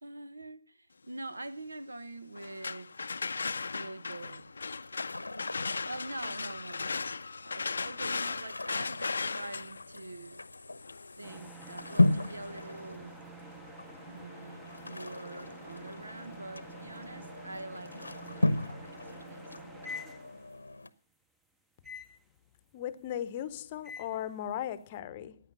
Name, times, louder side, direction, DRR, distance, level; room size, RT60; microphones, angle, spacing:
voice 1, 0.0-2.9 3.8-4.5 5.8-10.4 11.2-13.2 14.0-19.4, right 2 dB, 75° right, 1.3 m, -45 dB
sound 1, 2.4-12.2, left 4 dB, 60° left, 0.6 m, -37 dB
sound 2, 4.1-20.9, left 2 dB, 80° left, 1.0 m, -36 dB
sound 3, 11.2-20.7 21.8-22.2 23.8-24.2, equal, 5° right, 0.8 m, -48 dB
voice 2, 22.7-25.4, left 11 dB, 30° left, 0.9 m, -37 dB
15.0 x 9.8 x 5.7 m
figure-of-eight pair, 145°, 0 cm